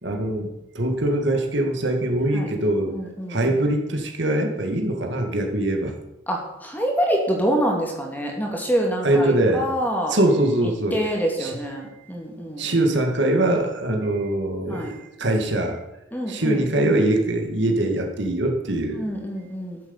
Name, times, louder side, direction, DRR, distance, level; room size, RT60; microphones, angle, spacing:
voice 1, 0.0-3.0 3.3-5.9 9.0-9.7 10.1-11.0 11.4-11.6 12.6-15.8 16.3-19.0, right 1 dB, 60° right, 2 dB, 2.2 m, -22 dB
voice 2, 2.9-3.4 6.3-10.2 10.9-12.7 14.7-14.9 16.1-17.0 18.9-19.8, equal, 10° left, 0 dB, 2.4 m, -26 dB
13.0 x 7.8 x 7.2 m, 0.89 s
head